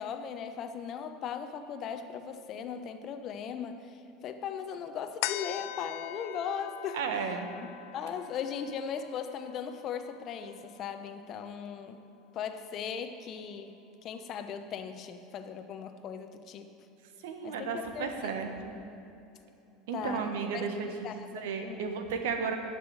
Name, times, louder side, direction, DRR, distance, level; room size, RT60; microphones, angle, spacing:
voice 1, 0.0-7.0 7.9-12.0 12.3-16.7 17.4-18.5 19.9-20.3 20.5-21.8, left 7 dB, 45° left, 8 dB, 0.8 m, -38 dB
sound 1, 5.2-12.0 12.4-12.5, left 16 dB, 70° left, 0.4 m, -42 dB
voice 2, 6.9-7.5 17.2-18.7 19.9-22.6, right 5 dB, 85° right, 5 dB, 1.3 m, -34 dB
11.0 x 6.0 x 8.0 m, 2.8 s
supercardioid pair, 115°, 0 cm